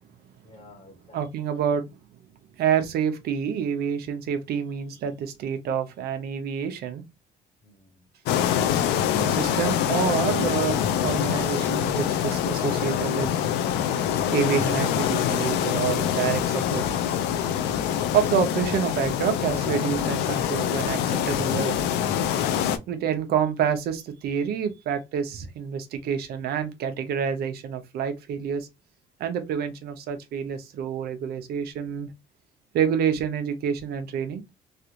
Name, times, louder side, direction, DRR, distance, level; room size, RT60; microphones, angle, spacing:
voice 1, 0.4-1.4 7.6-8.0 22.6-23.0, left 2 dB, 40° left, 1.3 m, -52 dB
voice 2, 1.1-1.8 2.6-7.0 9.2-13.3 14.3-16.8 18.1-21.8 22.9-28.7 29.2-32.1 32.7-34.4, right 7 dB, 70° right, 0.8 m, -27 dB
sound 1, 8.3-22.8, left 9 dB, 90° left, 0.5 m, -25 dB
3.3 x 2.5 x 2.8 m
cardioid pair, 110°, 17 cm